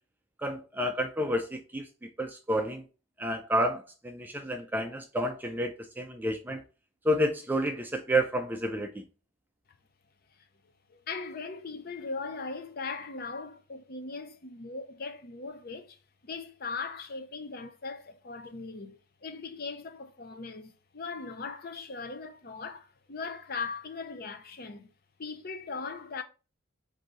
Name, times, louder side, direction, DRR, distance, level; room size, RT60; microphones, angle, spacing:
voice 1, 0.4-1.9 2.2-2.8 3.2-6.6 7.0-8.9, equal, 10° right, 0.3 m, -30 dB
voice 2, 10.9-16.0 16.2-24.9 25.2-26.2, left 4 dB, 45° left, 0.5 m, -39 dB
3.9 x 2.7 x 4.7 m
head